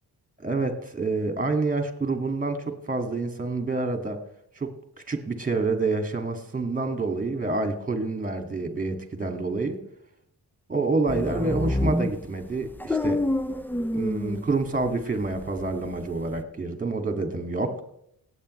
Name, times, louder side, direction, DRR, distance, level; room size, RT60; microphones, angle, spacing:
voice 1, 0.4-4.2 4.6-4.7 5.1-9.8 10.7-13.2 13.9-17.8, right 3 dB, 20° right, 6 dB, 2.2 m, -28 dB
sound 1, 11.1-14.9 15.2-16.4, left 1 dB, 5° left, 0.6 m, -28 dB
18.0 x 8.6 x 3.3 m, 0.74 s
cardioid pair, 85°, 39 cm